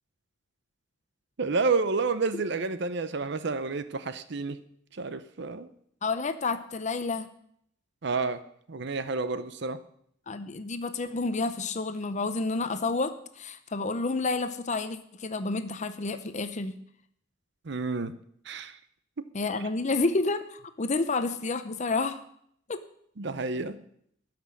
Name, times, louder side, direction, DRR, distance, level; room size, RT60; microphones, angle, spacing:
voice 1, 1.4-4.6 4.9-5.7 8.0-8.4 8.7-9.8 17.6-18.1 18.4-18.8 19.2-19.3 23.2-23.8, right 4 dB, 65° right, 13 dB, 0.7 m, -30 dB
voice 2, 6.0-7.3 10.3-16.8 19.3-22.2 22.7-22.8, left 3 dB, 40° left, 10 dB, 0.7 m, -30 dB
13.0 x 6.0 x 9.7 m, 0.69 s
head